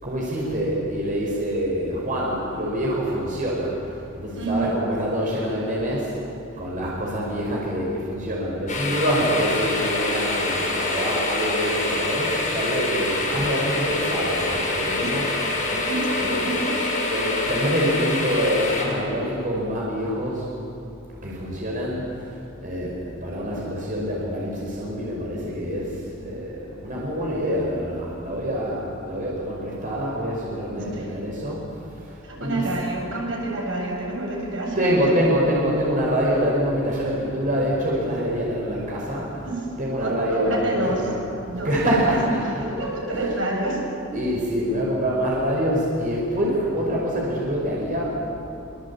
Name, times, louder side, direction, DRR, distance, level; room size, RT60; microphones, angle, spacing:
voice 1, 0.0-15.8 16.2-16.5 17.1-20.4 21.2-31.7 32.0-32.6 34.8-39.5 39.8-41.2 41.6-42.7 43.1-43.3 44.1-48.2, equal, 40° right, -4 dB, 5.7 m, -26 dB
voice 2, 4.4-4.8 15.0-15.1 15.7-17.1 30.8-31.1 32.2-35.1 39.3-39.7 40.0-41.1 41.4-42.2 42.6-44.2, right 2 dB, 70° right, -1 dB, 7.5 m, -28 dB
sound 1, 8.7-18.8, left 2 dB, 40° left, 6.9 m, -25 dB
25.5 x 25.0 x 8.7 m, 2.7 s
head